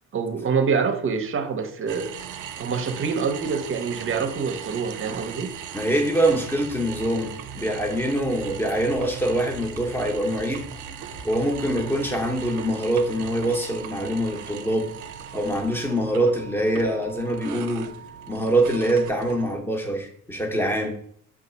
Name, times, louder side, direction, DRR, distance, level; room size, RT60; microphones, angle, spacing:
voice 1, 0.1-2.1 2.6-5.5, right 5 dB, 45° right, 0.7 m, -26 dB
sound 1, 1.9-19.6, right 8 dB, 80° right, 0.5 m, -39 dB
voice 2, 5.7-10.7 11.2-14.9 15.3-17.9 18.3-20.9, right 1 dB, 5° left, 0.9 m, -24 dB
sound 2, 7.3-12.4, left 1 dB, 60° left, 0.9 m, -45 dB
sound 3, 11.5-19.6, right 7 dB, 30° left, 1.1 m, -45 dB
5.2 x 2.4 x 3.9 m
cardioid pair, 90°, 30 cm